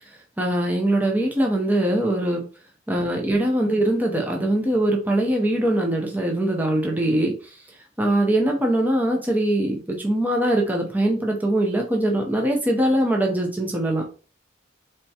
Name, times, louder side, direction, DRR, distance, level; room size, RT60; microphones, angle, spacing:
voice 1, 0.4-2.4 2.9-7.3 8.0-14.0, right 1 dB, 10° right, 0 dB, 0.6 m, -22 dB
4.3 x 3.3 x 2.8 m, 0.37 s
head